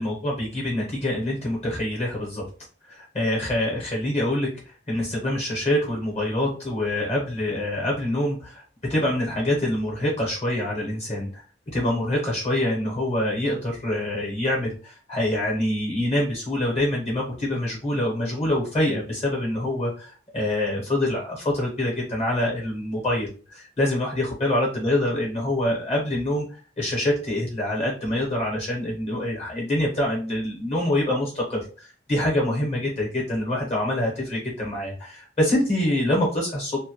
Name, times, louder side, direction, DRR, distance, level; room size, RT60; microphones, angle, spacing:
voice 1, 0.0-2.4 2.9-4.5 4.9-8.6 8.9-11.4 11.7-36.8, left 1 dB, 35° left, -2 dB, 0.8 m, -25 dB
2.1 x 2.0 x 2.8 m, 0.37 s
head